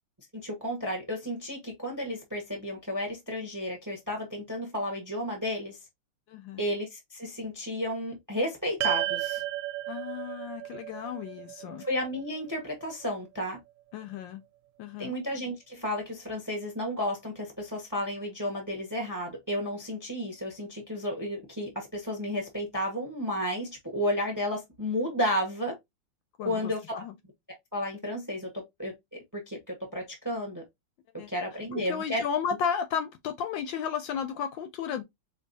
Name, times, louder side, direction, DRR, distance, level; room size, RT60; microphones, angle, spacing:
voice 1, 0.3-5.8 6.6-9.4 11.8-13.6 15.0-25.8 26.4-27.1 27.7-30.6 31.1-32.2, equal, 15° right, 0.6 m, -32 dB
voice 2, 6.3-6.6 9.9-11.8 13.9-14.4 14.8-15.1 26.4-27.1 31.2-31.3 31.7-35.0, left 7 dB, 75° left, 1.1 m, -33 dB
sound 1, 8.8-13.3, right 15 dB, 85° right, 1.5 m, -34 dB
4.6 x 2.8 x 2.6 m
omnidirectional pair, 2.3 m